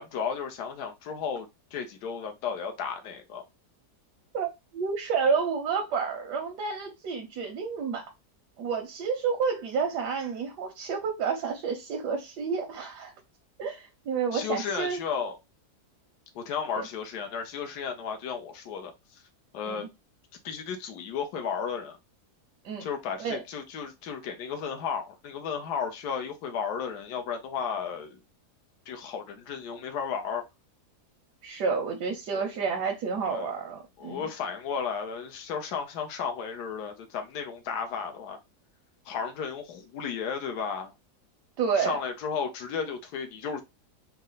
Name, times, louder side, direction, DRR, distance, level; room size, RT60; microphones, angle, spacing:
voice 1, 0.0-3.4 14.3-15.4 16.3-19.2 19.5-19.9 20.4-22.0 22.8-28.2 28.9-30.4 32.3-32.4 33.3-33.5 34.0-38.4 39.1-40.9 41.7-43.6, left 6 dB, 75° left, 1.3 m, -34 dB
voice 2, 4.3-8.0 8.6-13.1 13.6-15.0 16.7-16.9 19.7-19.9 22.6-22.9 23.2-23.4 31.4-34.3 41.6-42.0, right 5 dB, 90° right, 1.4 m, -30 dB
4.3 x 2.1 x 3.8 m
omnidirectional pair, 1.7 m